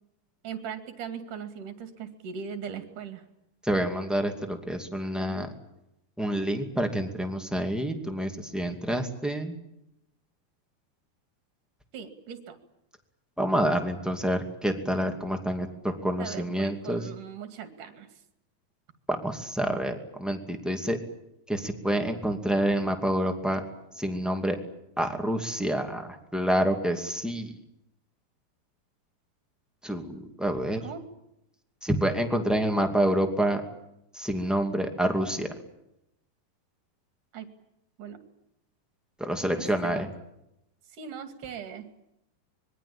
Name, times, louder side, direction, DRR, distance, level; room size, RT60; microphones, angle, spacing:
voice 1, 0.4-3.2 11.9-12.6 16.2-18.1 30.8-31.0 37.3-37.5 38.0-38.2 39.6-40.0 40.9-41.9, right 7 dB, 55° right, 8 dB, 3.6 m, -39 dB
voice 2, 3.6-5.5 6.2-9.5 13.4-17.0 19.1-21.0 21.5-23.6 23.9-24.6 25.0-27.5 29.8-30.8 31.8-33.6 34.1-35.5 39.2-40.1, equal, ahead, 5 dB, 0.9 m, -28 dB
25.5 x 22.5 x 8.7 m, 0.85 s
omnidirectional pair, 4.8 m